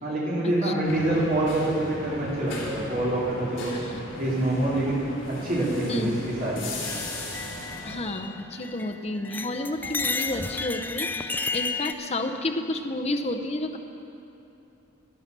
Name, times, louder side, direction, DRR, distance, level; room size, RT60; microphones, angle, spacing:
voice 1, 0.0-3.7 4.2-6.7, right 1 dB, 45° right, -6 dB, 3.0 m, -26 dB
sound 1, 0.8-8.0, left 1 dB, 70° left, 3.5 m, -38 dB
voice 2, 3.7-4.0 5.9-6.2 7.8-13.8, left 1 dB, 30° left, 5 dB, 0.7 m, -31 dB
sound 2, 6.8-8.9 9.2-11.9, left 4 dB, 10° left, 0.3 m, -32 dB
11.5 x 10.5 x 6.7 m, 2.9 s
head